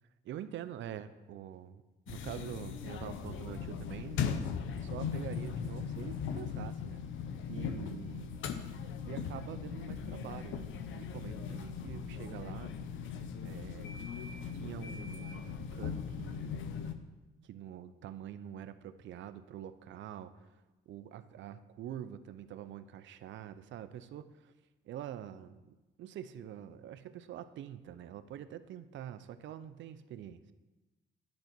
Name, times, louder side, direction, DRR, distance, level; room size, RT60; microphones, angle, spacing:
voice 1, 0.2-1.8 2.1-4.3 4.7-7.0 7.5-8.4 9.1-12.7 13.4-14.2 14.5-16.6 17.4-20.5 20.9-24.5 24.8-30.4, right 10 dB, 70° right, 12 dB, 0.5 m, -45 dB
sound 1, 2.1-16.9, left 7 dB, 75° left, 0.6 m, -39 dB
10.5 x 3.9 x 6.0 m, 1.1 s
cardioid pair, 90°, 20 cm